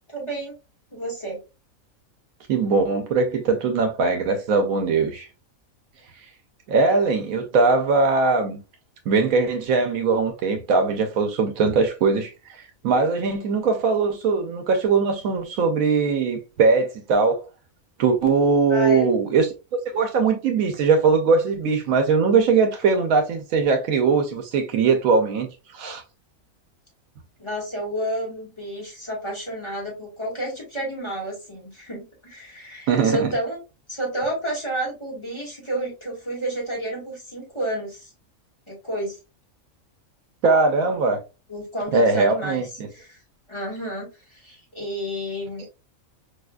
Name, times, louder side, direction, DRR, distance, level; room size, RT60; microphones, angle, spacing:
voice 1, 0.1-0.5 0.9-1.4 18.7-19.2 27.4-33.6 33.9-38.1 38.7-39.2 41.5-42.7 42.9-43.2 43.5-45.7, right 1 dB, 20° left, 1.3 m, -30 dB
voice 2, 2.5-5.3 6.7-8.6 9.1-12.6 12.8-17.4 18.0-19.5 19.9-26.0 32.9-33.3 40.4-41.2 41.9-42.9 45.6-45.7, right 4 dB, 80° right, 1.0 m, -20 dB
4.7 x 2.4 x 2.2 m
omnidirectional pair, 1.4 m